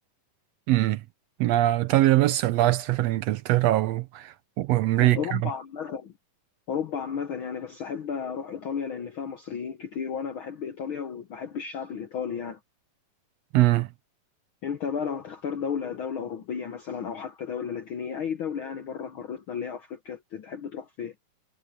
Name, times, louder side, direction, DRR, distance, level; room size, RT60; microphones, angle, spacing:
voice 1, 0.7-1.0 1.4-5.4 13.5-13.9, right 15 dB, 85° right, 1.4 m, -22 dB
voice 2, 5.0-6.1 6.7-12.6 14.6-21.1, left 7 dB, 85° left, 1.1 m, -33 dB
omnidirectional pair, 3.8 m